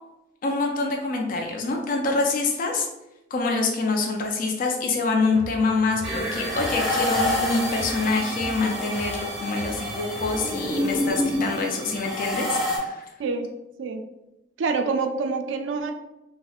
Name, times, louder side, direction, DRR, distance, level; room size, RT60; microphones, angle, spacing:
voice 1, 0.4-2.9 3.3-13.1, left 3 dB, 50° left, 1 dB, 0.4 m, -26 dB
sound 1, 5.2-10.7, right 1 dB, 35° right, 0.6 m, -39 dB
sound 2, 6.0-12.8, left 1 dB, ahead, 1.0 m, -28 dB
voice 2, 14.6-15.9, right 4 dB, 80° right, 7 dB, 0.3 m, -26 dB
4.1 x 2.0 x 2.3 m, 0.94 s
head